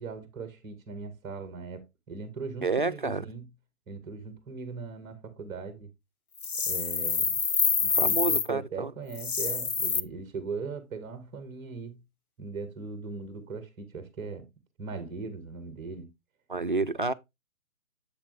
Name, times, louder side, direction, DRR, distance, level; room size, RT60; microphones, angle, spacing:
voice 1, 0.0-3.5 3.9-5.9 6.6-7.4 7.8-12.0 12.4-14.5 14.8-16.1, right 4 dB, 10° right, 0.8 m, -39 dB
voice 2, 2.6-3.2 7.9-8.9 16.5-17.1, right 3 dB, 40° right, 0.4 m, -29 dB
sound 1, 6.4-8.5 9.1-10.0, left 5 dB, 85° left, 0.9 m, -26 dB
7.5 x 7.2 x 2.5 m
figure-of-eight pair, 140°, 42 cm